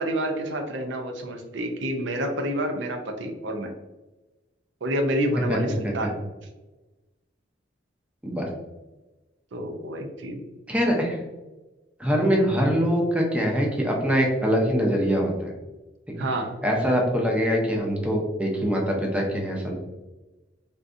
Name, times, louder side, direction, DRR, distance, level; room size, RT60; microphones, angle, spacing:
voice 1, 0.0-3.7 4.8-6.2 9.5-10.4 16.2-16.6, right 1 dB, 70° right, 4 dB, 0.5 m, -28 dB
voice 2, 5.5-6.0 8.2-8.5 10.7-11.2 12.0-15.5 16.6-19.7, equal, 5° right, -1 dB, 0.6 m, -23 dB
3.5 x 2.6 x 2.5 m, 1.1 s
head